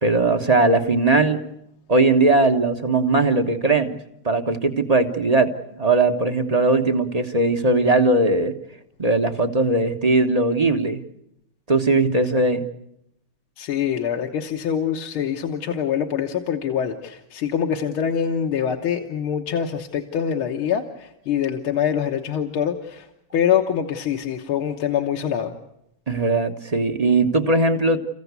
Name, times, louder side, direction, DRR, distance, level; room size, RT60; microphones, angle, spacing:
voice 1, 0.0-1.4 1.9-4.0 4.2-5.5 5.8-8.5 9.0-11.0 11.7-12.6 26.1-28.0, right 3 dB, 25° right, 6 dB, 0.8 m, -19 dB
voice 2, 13.6-23.1 23.3-25.5, left 8 dB, 70° left, 2 dB, 2.1 m, -24 dB
30.0 x 15.5 x 8.3 m, 0.80 s
omnidirectional pair, 2.4 m